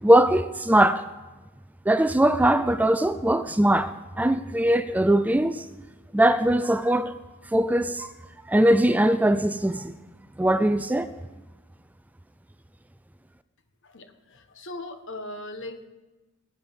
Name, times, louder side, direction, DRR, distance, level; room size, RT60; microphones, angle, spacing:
voice 1, 0.0-1.0 1.9-3.9 4.2-5.6 6.1-7.1 7.5-8.1 8.5-9.9 10.4-11.1, right 1 dB, 5° right, 0.3 m, -21 dB
voice 2, 13.8-15.9, left 1 dB, 60° left, 1.3 m, -39 dB
21.0 x 8.7 x 5.6 m
head